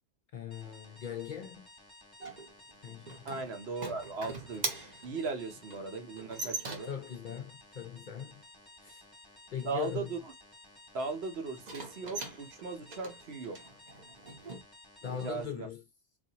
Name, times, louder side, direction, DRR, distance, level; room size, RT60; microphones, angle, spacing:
voice 1, 0.3-1.7 2.8-3.3 6.9-8.4 8.8-9.0 9.5-10.1 15.0-15.8, left 9 dB, 55° left, 0.6 m, -40 dB
sound 1, 0.5-15.4, left 2 dB, 20° left, 1.1 m, -56 dB
sound 2, 2.2-7.2 11.6-14.6, right 3 dB, 40° right, 0.9 m, -41 dB
voice 2, 3.3-6.9 9.6-10.2 10.9-13.6 15.0-15.7, right 4 dB, 65° right, 1.1 m, -38 dB
4.1 x 2.4 x 2.8 m
omnidirectional pair, 1.2 m